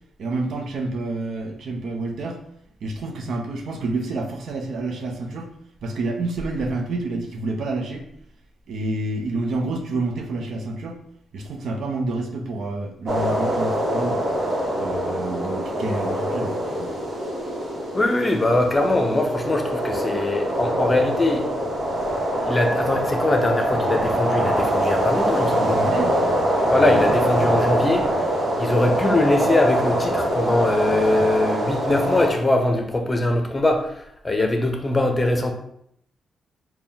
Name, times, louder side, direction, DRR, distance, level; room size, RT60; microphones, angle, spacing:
voice 1, 0.2-2.4 2.8-5.5 5.8-8.1 8.7-11.0 11.3-14.2 14.7-16.9 25.4-26.1, right 2 dB, 70° right, 3 dB, 0.6 m, -28 dB
sound 1, 13.1-32.3, right 1 dB, 50° right, 1.3 m, -24 dB
voice 2, 17.9-21.4 22.5-25.8 26.7-28.1 28.6-33.9 34.2-35.5, left 2 dB, 25° left, 4 dB, 0.7 m, -21 dB
4.2 x 2.3 x 3.5 m, 0.72 s
cardioid pair, 70°, 0 cm